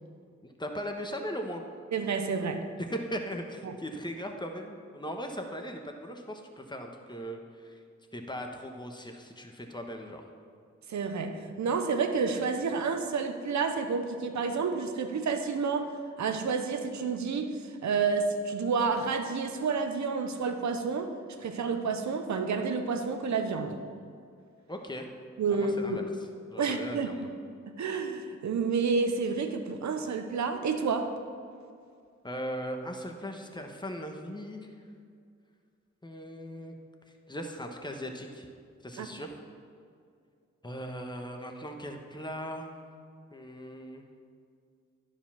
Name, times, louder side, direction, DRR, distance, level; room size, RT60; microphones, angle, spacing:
voice 1, 0.4-1.6 2.8-7.8 8.1-10.2 24.7-25.1 25.5-26.0 26.5-27.3 32.2-34.7 36.0-36.7 37.3-38.5 38.8-39.4 40.6-42.8 43.3-44.0, equal, 15° left, 3 dB, 1.3 m, -38 dB
voice 2, 1.9-2.7 3.6-3.7 10.9-23.8 25.4-26.0 26.6-27.1 27.8-31.1 39.0-39.1, right 5 dB, 70° right, 7 dB, 0.9 m, -30 dB
10.5 x 5.0 x 5.8 m, 2.3 s
supercardioid pair, 45°, 29 cm